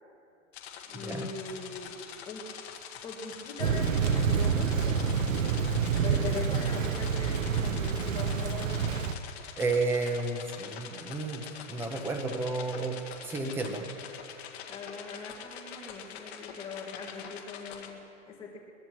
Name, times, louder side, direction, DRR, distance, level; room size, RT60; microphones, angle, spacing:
sound 1, 0.5-17.9, left 8 dB, 55° left, 1.8 m, -45 dB
voice 1, 0.9-2.0 2.2-2.5 3.0-5.2 5.9-9.0 14.7-18.6, left 4 dB, 15° left, -3 dB, 1.8 m, -41 dB
Thunder / Rain, 3.6-9.1, right 6 dB, 90° right, 1.0 m, -28 dB
voice 2, 9.6-13.0 13.2-13.8, right 3 dB, 5° right, 4 dB, 0.7 m, -31 dB
22.5 x 20.5 x 3.1 m, 2.7 s
supercardioid pair, 165°, 38 cm